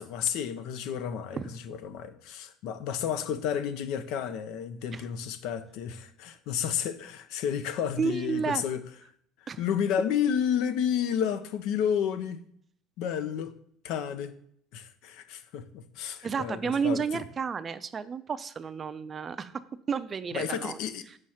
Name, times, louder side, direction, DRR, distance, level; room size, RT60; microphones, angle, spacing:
voice 1, 0.0-8.8 9.6-12.4 13.0-13.5 13.8-14.3 14.7-17.0 20.3-21.0, left 8 dB, 70° left, 0.6 m, -31 dB
voice 2, 8.0-8.6 9.5-9.6 16.2-19.6 19.9-20.8 21.1-21.2, right 6 dB, 30° right, 0.4 m, -31 dB
6.3 x 3.2 x 5.6 m
supercardioid pair, 105°, 0 cm